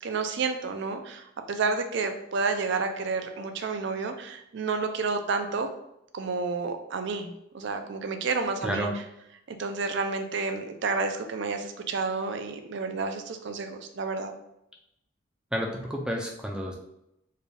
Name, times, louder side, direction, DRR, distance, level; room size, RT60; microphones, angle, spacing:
voice 1, 0.0-5.7 6.1-8.9 9.5-14.3, right 4 dB, 60° right, 7 dB, 0.5 m, -30 dB
voice 2, 8.6-9.0 15.5-16.7, equal, 5° right, -1 dB, 0.4 m, -30 dB
4.6 x 2.3 x 3.3 m, 0.82 s
head